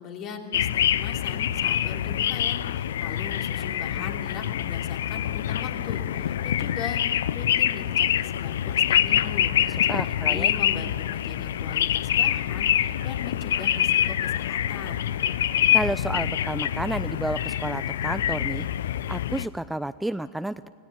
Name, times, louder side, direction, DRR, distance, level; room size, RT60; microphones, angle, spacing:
voice 1, 0.0-7.0 7.3-15.1, left 5 dB, 45° left, 2 dB, 3.0 m, -39 dB
sound 1, 0.5-19.5, left 11 dB, 75° left, 0.5 m, -25 dB
voice 2, 9.9-10.5 15.7-18.7 19.1-20.7, right 1 dB, 5° right, 13 dB, 0.5 m, -31 dB
20.0 x 17.0 x 8.6 m, 2.1 s
hypercardioid pair, 95°, 0 cm